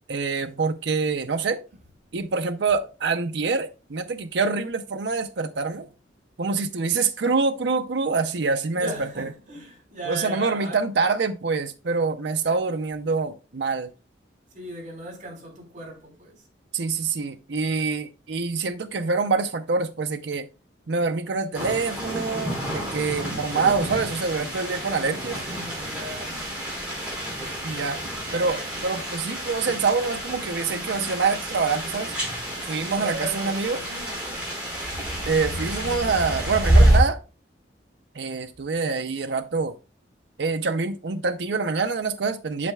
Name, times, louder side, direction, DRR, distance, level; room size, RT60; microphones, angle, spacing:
voice 1, 0.1-1.7 2.1-5.9 6.4-9.3 10.1-13.9 16.7-20.5 20.9-25.4 27.6-28.0 28.3-32.1 32.7-33.8 35.3-37.2 38.1-39.7 40.4-42.7, right 4 dB, 70° right, 0.6 m, -26 dB
voice 2, 8.7-10.8 12.4-12.5 14.5-16.3 24.9-26.3 28.3-28.9 32.9-34.5 35.7-35.9, right 1 dB, 45° right, 4.2 m, -38 dB
sound 1, 21.5-37.0, right 1 dB, 5° right, 4.7 m, -27 dB
8.4 x 7.2 x 2.3 m
head